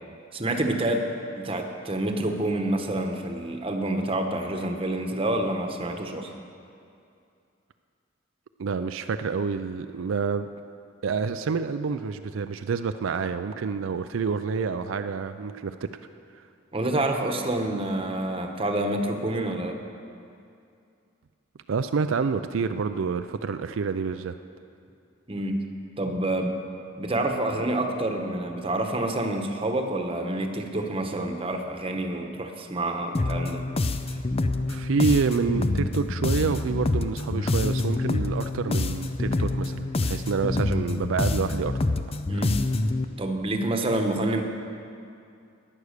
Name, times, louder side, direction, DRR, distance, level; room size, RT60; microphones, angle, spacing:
voice 1, 0.3-1.1 1.4-6.3 16.7-19.8 25.3-25.6 26.0-26.6 27.0-33.6 42.3-42.6 43.2-44.4, right 1 dB, 30° right, 4 dB, 1.1 m, -28 dB
voice 2, 8.6-10.5 11.0-15.9 21.7-24.4 34.7-42.0, right 5 dB, 85° right, 9 dB, 0.4 m, -28 dB
sound 1, 33.1-43.0, left 2 dB, 30° left, 0.5 m, -26 dB
14.5 x 9.8 x 6.6 m, 2.5 s
head